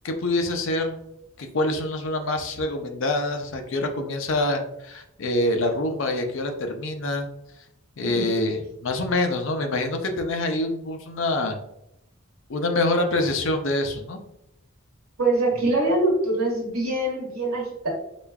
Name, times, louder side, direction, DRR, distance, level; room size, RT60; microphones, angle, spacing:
voice 1, 0.0-1.0 1.4-7.3 8.0-11.6 12.5-14.2, left 2 dB, 60° left, 5 dB, 0.5 m, -26 dB
voice 2, 15.2-17.9, right 2 dB, 90° right, -2 dB, 1.2 m, -24 dB
4.9 x 2.3 x 2.3 m, 0.82 s
head